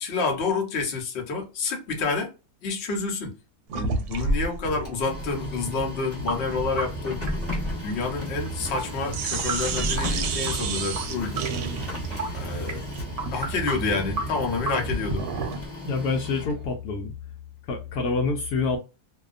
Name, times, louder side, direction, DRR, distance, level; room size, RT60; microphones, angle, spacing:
voice 1, 0.0-2.3 2.6-3.3 3.7-7.2 7.8-11.4 12.3-12.8 13.3-15.2, left 4 dB, 50° left, 0.9 m, -28 dB
sound 1, 3.7-8.8 9.1-15.7, right 3 dB, 75° right, 1.0 m, -32 dB
Printer, 4.7-16.7, left 2 dB, 15° left, 0.4 m, -36 dB
sound 2, 6.1-14.9, right 4 dB, 40° right, 0.6 m, -35 dB
voice 2, 15.8-17.1 17.7-18.8, left 4 dB, 75° left, 1.0 m, -26 dB
2.7 x 2.2 x 2.4 m
omnidirectional pair, 1.7 m